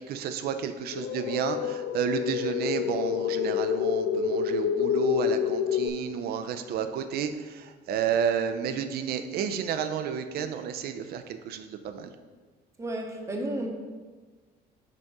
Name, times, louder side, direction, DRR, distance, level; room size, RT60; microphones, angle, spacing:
voice 1, 0.1-12.1, right 8 dB, 70° right, 8 dB, 0.5 m, -31 dB
sound 1, 0.9-5.9, left 8 dB, 75° left, 0.4 m, -28 dB
voice 2, 12.8-13.7, right 1 dB, 15° right, 1 dB, 0.9 m, -32 dB
5.3 x 5.2 x 3.6 m, 1.4 s
cardioid pair, 110°, 17 cm